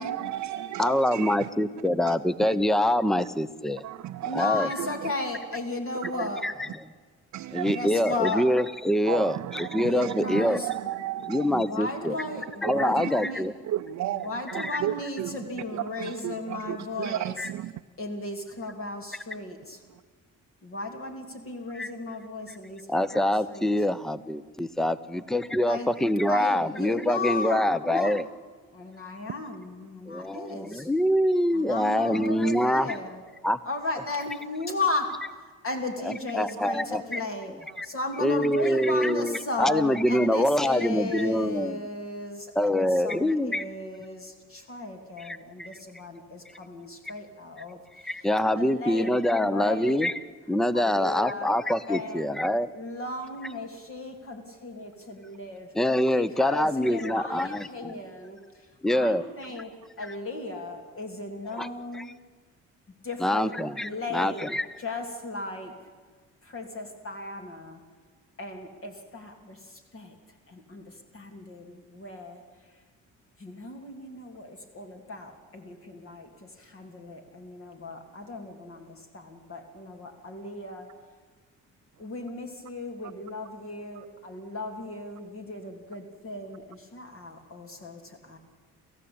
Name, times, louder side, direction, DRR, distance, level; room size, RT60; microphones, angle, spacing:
voice 1, 0.0-1.5 2.0-2.1 2.4-2.6 3.8-5.1 6.0-6.3 7.3-8.0 9.0-11.6 12.3-13.1 13.6-17.8 19.9-20.0 36.6-36.7 37.7-37.8 83.0-83.1 83.9-84.1, right 13 dB, 70° right, 6 dB, 0.7 m, -34 dB
voice 2, 0.8-3.8 4.3-4.7 6.4-6.8 7.5-10.6 11.3-12.2 12.6-13.5 14.6-14.7 17.4-17.5 21.7-21.9 22.9-28.3 30.1-33.0 33.4-33.6 36.0-37.2 37.8-37.9 38.2-41.9 42.5-43.6 45.2-45.7 48.0-50.1 50.5-52.7 55.7-57.9 58.8-59.2 61.5-61.7 61.9-62.1 63.2-64.8, left 1 dB, ahead, 15 dB, 0.8 m, -25 dB
voice 3, 4.2-6.4 7.7-8.5 9.8-10.7 11.5-13.4 14.2-17.3 18.0-19.8 20.6-23.7 25.6-28.2 28.7-30.9 31.5-33.2 33.6-35.1 35.6-37.5 37.8-47.8 48.6-50.1 50.7-51.6 51.9-52.4 52.7-55.7 56.1-58.4 58.9-59.7 60.0-62.1 63.0-65.7 66.4-67.8 68.4-69.6 69.9-70.1 70.5-72.4 73.4-80.9 82.0-88.4, left 2 dB, 45° left, 3 dB, 3.1 m, -35 dB
28.5 x 14.5 x 8.8 m, 1.5 s
cardioid pair, 90°, 30 cm